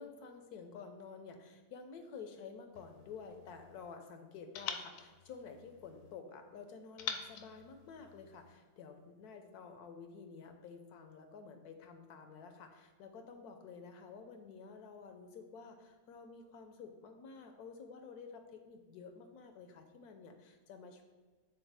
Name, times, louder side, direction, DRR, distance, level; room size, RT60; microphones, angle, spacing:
voice 1, 0.0-21.0, left 5 dB, 85° left, 6 dB, 1.3 m, -51 dB
sound 1, 2.7-4.0 4.5-6.2 7.0-8.6, left 7 dB, 70° left, 0.9 m, -46 dB
8.9 x 3.9 x 3.4 m, 1.3 s
omnidirectional pair, 1.6 m